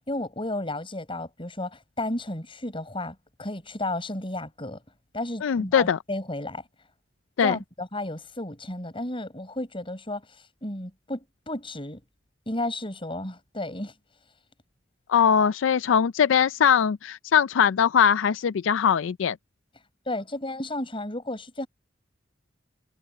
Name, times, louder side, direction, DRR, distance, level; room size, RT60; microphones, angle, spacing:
voice 1, 0.0-4.8 5.1-6.6 7.4-10.3 10.6-12.0 12.5-13.9 20.1-21.7, left 1 dB, 30° left, 6.7 m, -33 dB
voice 2, 5.4-6.0 7.4-7.6 15.1-19.4, left 7 dB, 85° left, 0.4 m, -21 dB
head